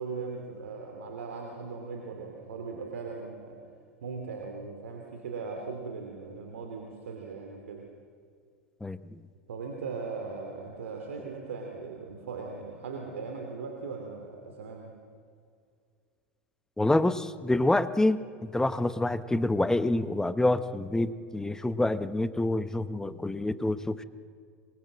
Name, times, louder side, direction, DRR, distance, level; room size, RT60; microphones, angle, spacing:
voice 1, 0.0-3.6 4.0-7.8 9.5-14.9, right 4 dB, 75° right, 2 dB, 2.9 m, -39 dB
voice 2, 8.8-9.2 16.8-24.0, left 2 dB, 10° left, 13 dB, 1.0 m, -27 dB
26.0 x 22.0 x 7.7 m, 2.1 s
hypercardioid pair, 85°, 7 cm